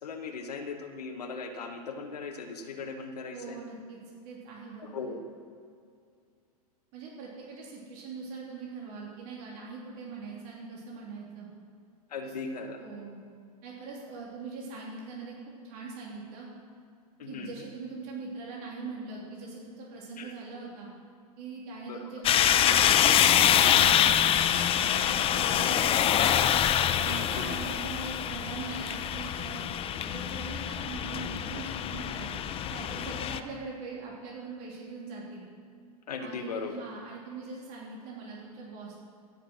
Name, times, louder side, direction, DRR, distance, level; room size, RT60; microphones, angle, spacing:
voice 1, 0.0-3.6 4.8-5.2 12.1-12.8 17.2-17.5 20.2-20.3 21.9-22.0 27.2-27.5 36.1-36.8, left 4 dB, 80° left, 4 dB, 1.1 m, -38 dB
voice 2, 3.3-4.0 4.2-5.2 6.9-11.5 12.2-12.3 12.8-13.2 13.6-15.3 15.6-16.5 17.2-20.9 21.4-24.4 24.7-26.4 26.9-29.7 30.0-32.4 32.7-35.4 36.2-38.9, right 4 dB, 50° right, -4 dB, 3.0 m, -42 dB
sound 1, 22.2-33.4, left 10 dB, 30° left, 0.6 m, -25 dB
15.5 x 6.7 x 6.2 m, 2.3 s
hypercardioid pair, 100°, 20 cm